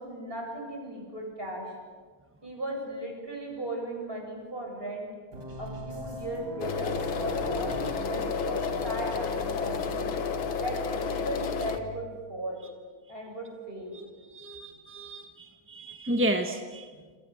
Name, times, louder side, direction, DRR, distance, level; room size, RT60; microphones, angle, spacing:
voice 1, 0.0-1.7 2.4-5.1 5.6-10.1 10.6-12.6 13.1-13.9, right 1 dB, 25° right, 1 dB, 7.9 m, -37 dB
sound 1, 5.3-10.3, left 1 dB, 65° right, 4.6 m, -40 dB
sound 2, 6.6-11.8, left 5 dB, 75° left, 2.3 m, -31 dB
voice 2, 13.9-16.9, right 1 dB, 5° right, 5 dB, 1.1 m, -32 dB
27.5 x 27.5 x 7.9 m, 1.5 s
omnidirectional pair, 2.3 m